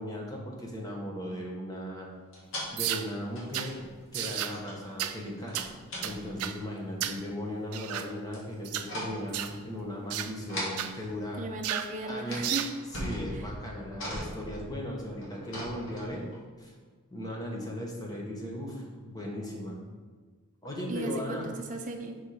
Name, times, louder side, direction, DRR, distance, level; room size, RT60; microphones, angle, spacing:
voice 1, 0.0-2.1 2.7-3.8 4.1-5.6 6.0-11.4 12.1-12.5 12.9-16.3 16.6-16.7 17.1-19.8 20.6-21.5, equal, 15° left, -1 dB, 1.0 m, -37 dB
sound 1, 2.3-2.7 3.3-4.0 4.3-4.8 5.5-6.5 8.3-8.5 8.8-9.3 10.5-10.8 11.7-11.8 12.0-12.5 12.8-16.4, equal, 60° left, 1.5 m, -39 dB
sound 2, 2.8-3.1 3.5-3.7 4.1-4.6 5.0-5.2 5.5-5.7 6.0-6.6 7.0-7.2 7.7-8.1 8.6-8.9 9.3-9.6 10.1-10.3 10.8-10.9 11.6-11.9 12.4-12.8, right 11 dB, 90° right, 0.4 m, -33 dB
voice 2, 11.4-12.8 13.3-13.5 20.9-22.2, right 2 dB, 35° right, 3 dB, 0.6 m, -36 dB
5.2 x 4.3 x 4.8 m, 1.5 s
head